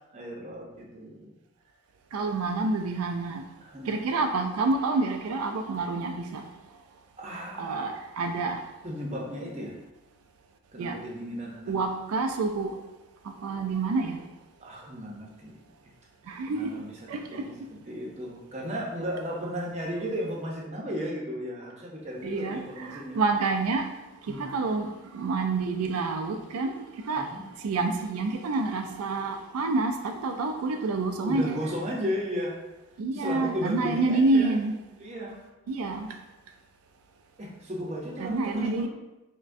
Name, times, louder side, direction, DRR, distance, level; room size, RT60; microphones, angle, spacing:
voice 1, 0.1-1.4 3.6-4.3 7.2-7.9 8.8-9.7 10.7-11.7 14.6-15.6 16.5-16.9 17.3-23.2 24.3-24.5 27.2-27.4 31.2-32.6 33.1-34.6 35.0-35.5 37.4-38.9, equal, 30° right, -2 dB, 0.6 m, -35 dB
voice 2, 2.1-3.4 3.9-6.4 7.3-8.6 10.8-11.0 11.7-12.7 13.3-14.2 16.3-16.7 17.1-17.5 22.2-23.9 24.3-27.3 27.6-31.6 33.0-34.8 35.7-36.1 38.2-38.9, right 3 dB, 90° right, 5 dB, 0.4 m, -28 dB
5.5 x 2.2 x 2.5 m, 0.98 s
head